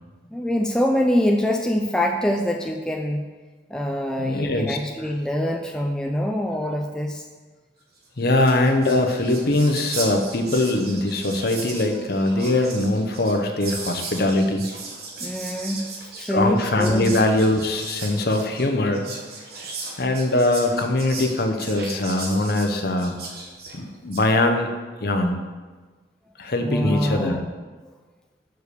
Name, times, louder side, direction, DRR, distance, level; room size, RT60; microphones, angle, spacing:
voice 1, 0.3-3.3 3.7-7.2 15.2-17.2 26.6-27.5, equal, 5° left, 2 dB, 0.3 m, -24 dB
voice 2, 4.2-4.8 8.2-14.7 16.3-19.1 20.0-23.2 23.7-24.7 25.0-25.4 26.4-27.4, left 1 dB, 55° left, 5 dB, 0.8 m, -22 dB
Whispering, 8.0-8.1 8.3-24.3, right 3 dB, 55° right, 1.2 m, -37 dB
6.2 x 4.9 x 6.7 m, 1.4 s
head